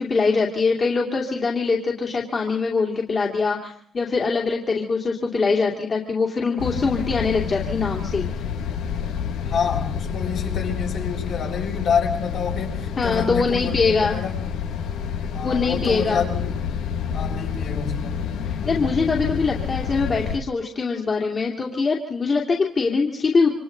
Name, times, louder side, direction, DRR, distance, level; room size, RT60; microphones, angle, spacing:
voice 1, 0.0-8.3 13.0-14.2 15.4-16.2 18.5-23.6, left 4 dB, 40° left, -2 dB, 2.8 m, -23 dB
sound 1, 6.6-20.4, left 7 dB, 90° left, 1.5 m, -28 dB
voice 2, 9.4-14.5 15.3-16.5 17.1-18.2, left 6 dB, 65° left, -1 dB, 6.9 m, -28 dB
28.5 x 25.0 x 4.0 m, 0.62 s
cardioid pair, 90°, 0 cm